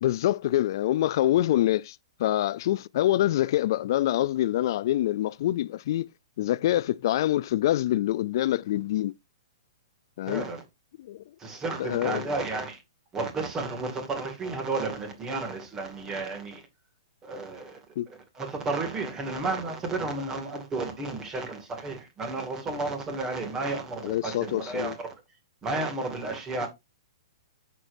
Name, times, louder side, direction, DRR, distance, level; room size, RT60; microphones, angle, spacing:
voice 1, 0.0-6.1 6.4-9.1 10.2-10.4 11.0-11.2 11.8-12.3 18.0-18.1 24.0-24.9, left 13 dB, 55° left, 0.3 m, -25 dB
voice 2, 10.3-10.6 11.4-12.8 13.1-16.6 17.2-25.1 25.6-26.7, right 3 dB, 20° right, 2.2 m, -32 dB
8.3 x 6.7 x 2.6 m
hypercardioid pair, 145°, 3 cm